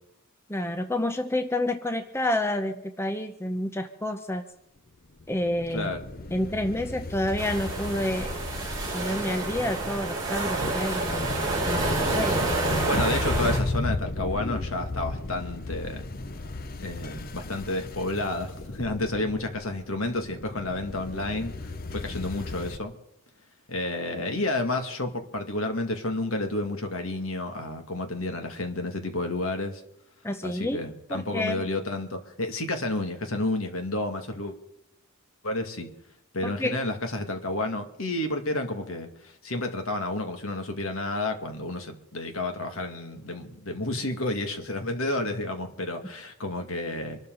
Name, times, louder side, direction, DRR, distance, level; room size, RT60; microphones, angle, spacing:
voice 1, 0.5-4.4 5.3-5.9 6.3-8.3 8.9-12.9 30.2-30.8 31.1-31.6 36.4-36.8, left 1 dB, 10° left, 7 dB, 0.8 m, -29 dB
sound 1, 5.2-22.8, left 2 dB, 40° left, 0.8 m, -34 dB
voice 2, 5.7-6.0 12.9-16.1 16.8-22.9 23.7-29.8 30.4-34.6 35.4-35.9 36.3-47.2, left 2 dB, 70° left, 5 dB, 2.4 m, -30 dB
sound 2, 7.4-13.6, right 3 dB, 15° right, 6.4 m, -29 dB
25.5 x 12.5 x 4.0 m, 0.78 s
head